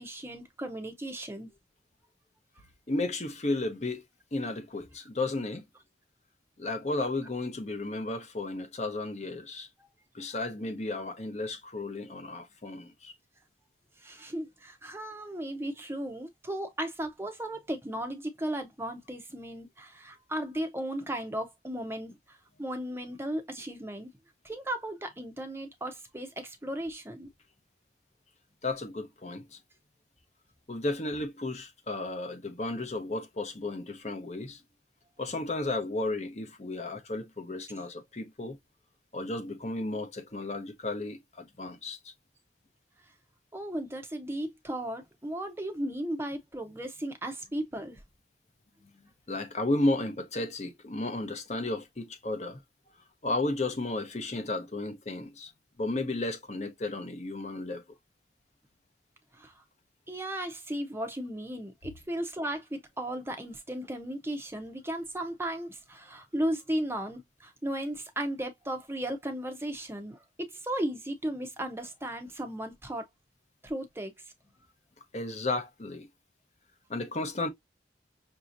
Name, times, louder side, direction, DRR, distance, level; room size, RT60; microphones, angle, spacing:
voice 1, 0.0-1.5 9.8-9.9 14.0-24.1 24.4-27.3 43.5-48.0 59.3-59.6 60.1-73.1 73.6-74.1, right 1 dB, 15° right, 0.7 m, -35 dB
voice 2, 2.9-4.0 4.3-5.6 6.6-9.7 10.1-13.1 28.6-29.6 30.7-34.6 35.2-38.6 39.1-42.1 49.3-52.6 53.2-55.5 55.8-57.8 75.1-76.1 76.9-77.5, left 2 dB, 40° left, 0.8 m, -33 dB
5.9 x 2.8 x 2.5 m
head